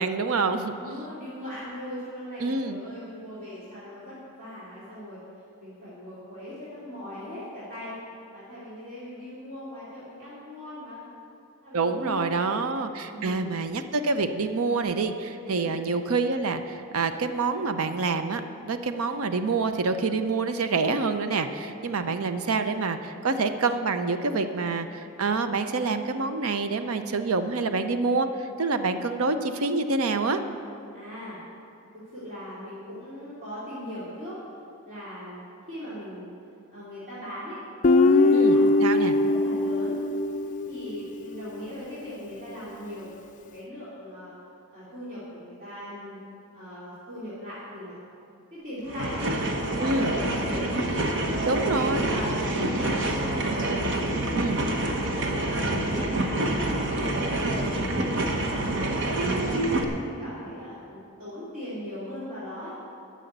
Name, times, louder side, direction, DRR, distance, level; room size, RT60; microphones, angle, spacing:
voice 1, 0.0-1.0 2.4-2.8 11.7-30.4 38.3-39.1 49.8-50.1 51.5-52.0 54.3-54.6, right 3 dB, 75° right, 9 dB, 0.6 m, -27 dB
voice 2, 0.8-5.2 5.6-8.0 8.3-11.0 11.6-12.6 13.1-13.6 15.5-15.8 30.9-31.4 32.1-34.4 34.8-36.3 36.7-37.6 38.0-40.0 40.7-43.2 43.5-44.3 44.7-46.2 46.5-48.0 48.5-50.7 51.3-53.7 54.3-55.0 55.4-58.9 59.5-62.7, equal, 40° right, -11 dB, 2.7 m, -38 dB
Guitar, 37.8-41.1, left 2 dB, 35° left, 0.4 m, -21 dB
sound 1, 48.9-59.8, right 1 dB, 55° right, 1.0 m, -27 dB
12.0 x 6.3 x 8.0 m, 2.7 s
head